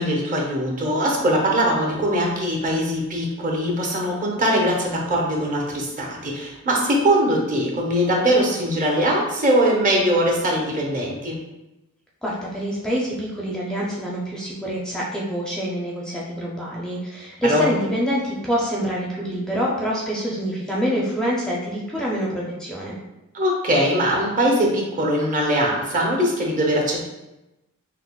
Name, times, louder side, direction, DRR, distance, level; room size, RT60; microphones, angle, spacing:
voice 1, 0.0-11.4 17.5-17.7 23.3-27.0, equal, 40° right, -1 dB, 0.7 m, -21 dB
voice 2, 12.2-23.0, equal, 5° left, -5 dB, 0.4 m, -26 dB
5.6 x 2.0 x 2.3 m, 0.97 s
head